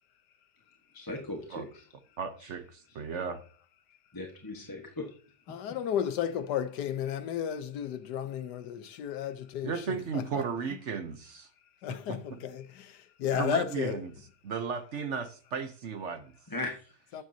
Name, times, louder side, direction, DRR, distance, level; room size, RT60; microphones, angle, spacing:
voice 1, 0.9-1.8 4.1-5.1 16.5-17.2, left 2 dB, 15° left, 1.1 m, -38 dB
voice 2, 2.2-3.4 9.6-11.5 11.9-12.4 13.3-14.1 14.4-16.3, right 6 dB, 55° right, 0.9 m, -35 dB
voice 3, 5.5-10.4 11.8-14.0 17.1-17.2, left 9 dB, 75° left, 1.4 m, -33 dB
12.5 x 9.1 x 2.7 m
omnidirectional pair, 1.8 m